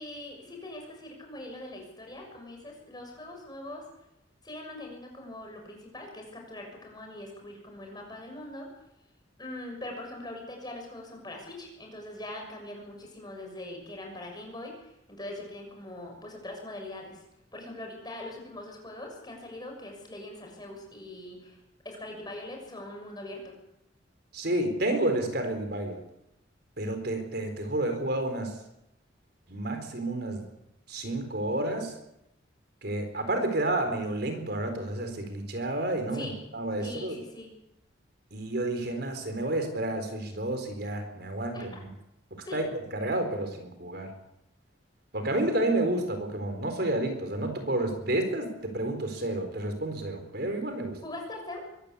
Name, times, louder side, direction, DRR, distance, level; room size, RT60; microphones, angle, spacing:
voice 1, 0.0-3.8 4.4-8.7 9.4-17.2 17.5-21.6 21.8-23.5 36.1-36.4 36.8-37.5 41.5-41.7 42.5-42.6 51.0-51.6, left 1 dB, 20° left, 2 dB, 6.8 m, -42 dB
voice 2, 24.3-26.0 26.8-28.6 29.5-30.4 30.9-31.9 32.8-37.2 38.3-41.9 42.3-44.1 45.1-51.0, right 1 dB, 55° right, 6 dB, 4.2 m, -30 dB
23.5 x 15.5 x 8.5 m, 0.85 s
head